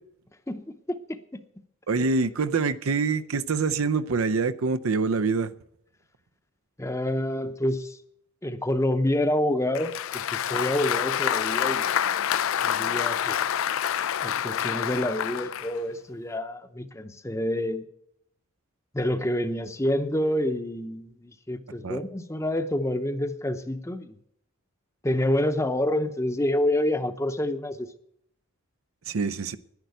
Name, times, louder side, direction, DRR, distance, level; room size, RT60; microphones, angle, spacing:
voice 1, 0.5-1.4 6.8-8.0 8.4-11.9 12.6-13.4 14.2-17.8 18.9-24.2 25.0-27.9, left 1 dB, 15° left, 0.7 m, -28 dB
voice 2, 1.9-5.5 21.8-22.0 29.1-29.6, right 4 dB, 85° right, 0.6 m, -25 dB
Applause, 9.7-15.8, left 9 dB, 80° left, 0.4 m, -27 dB
10.5 x 10.5 x 8.1 m
head